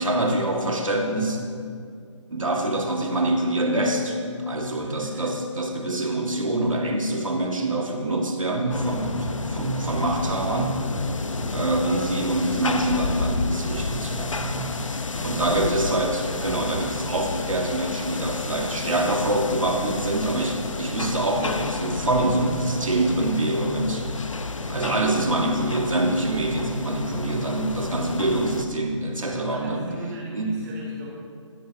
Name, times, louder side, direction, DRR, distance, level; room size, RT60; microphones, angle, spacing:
voice 1, 0.0-1.4 2.3-10.8 11.5-14.7 15.2-24.1 24.7-29.9 30.3-30.6, right 1 dB, 85° right, 2 dB, 2.2 m, -25 dB
voice 2, 4.8-5.3 9.5-9.9 11.3-11.6 15.2-15.9 18.7-18.9 24.8-25.0 29.5-31.1, right 3 dB, 35° right, -5 dB, 2.1 m, -37 dB
sound 1, 7.5-7.9 8.4-9.2 9.6-10.4 10.7-11.7 12.3-13.5 13.9-14.1 14.4-14.5 15.0-15.4 16.3-16.7, left 1 dB, 25° left, 2.9 m, -45 dB
sound 2, 8.7-28.6, left 3 dB, 75° left, 1.1 m, -31 dB
17.0 x 13.5 x 3.0 m, 2.3 s
figure-of-eight pair, 155°, 16 cm